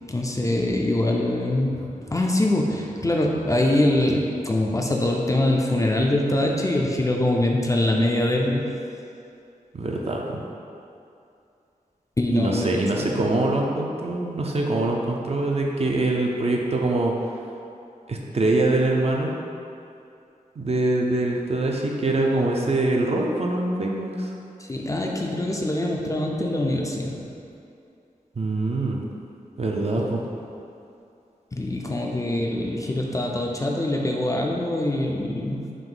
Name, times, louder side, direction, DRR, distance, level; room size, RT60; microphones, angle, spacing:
voice 1, 0.1-8.6 12.2-12.7 13.0-13.3 24.6-27.2 31.5-35.7, left 1 dB, 20° left, -1 dB, 0.4 m, -23 dB
voice 2, 9.7-10.4 12.3-17.1 18.1-19.3 20.6-24.3 28.4-29.0 29.6-30.2 32.1-32.2, right 2 dB, 45° right, -1 dB, 0.4 m, -24 dB
3.7 x 2.6 x 3.8 m, 2.6 s
wide cardioid pair, 70°, 15 cm